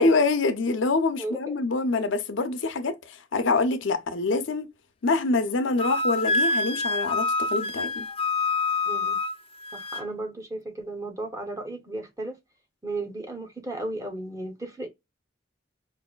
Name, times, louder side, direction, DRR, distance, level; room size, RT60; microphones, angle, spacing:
voice 1, 0.0-4.7 5.0-8.1, left 3 dB, 80° left, 0.6 m, -25 dB
voice 2, 1.2-1.5 8.9-9.2 9.7-12.4 12.8-14.9, right 2 dB, 15° right, 0.7 m, -34 dB
Wind instrument woodwind instrument, 5.8-10.1, left 3 dB, 30° left, 0.4 m, -27 dB
4.7 x 2.6 x 2.2 m
head